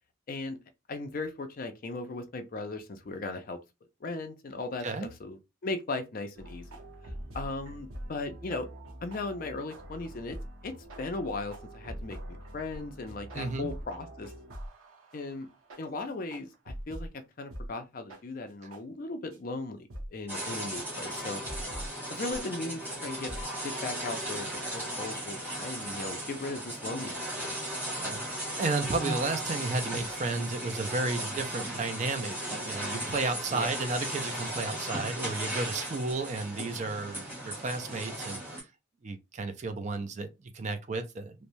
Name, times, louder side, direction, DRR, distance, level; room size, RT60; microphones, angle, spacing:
voice 1, 0.3-0.6 0.9-3.6 4.0-6.7 7.3-8.7 9.0-10.4 10.6-14.3 15.1-15.5 15.8-21.4 22.1-23.3 23.6-27.6 33.5-33.7, left 3 dB, 45° left, 0.4 m, -37 dB
sound 1, 6.4-17.1 17.5-17.7 18.1-18.2 18.7-18.8 19.3-19.4 19.9-20.1 20.5-20.6 21.1-21.9 22.3-22.4 22.7-23.6, equal, 85° right, 0.8 m, -43 dB
voice 2, 13.3-13.7 28.0-28.2 28.5-38.7 39.0-41.3, right 3 dB, 35° right, 0.4 m, -33 dB
sound 2, 20.3-38.6, right 1 dB, 10° right, 1.1 m, -36 dB
3.0 x 2.1 x 2.6 m
head